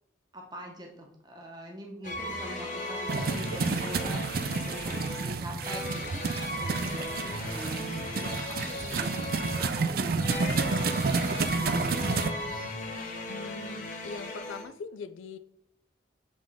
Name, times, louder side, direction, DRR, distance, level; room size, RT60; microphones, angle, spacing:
voice 1, 0.3-10.2 10.5-12.4, equal, 20° right, 1 dB, 0.9 m, -43 dB
sound 1, 2.0-14.6, left 1 dB, 40° left, 1.1 m, -37 dB
sound 2, 3.1-12.3, right 4 dB, 50° right, 0.4 m, -30 dB
voice 2, 13.3-15.4, left 4 dB, 80° left, 10 dB, 0.4 m, -41 dB
7.5 x 3.6 x 3.6 m, 0.78 s
head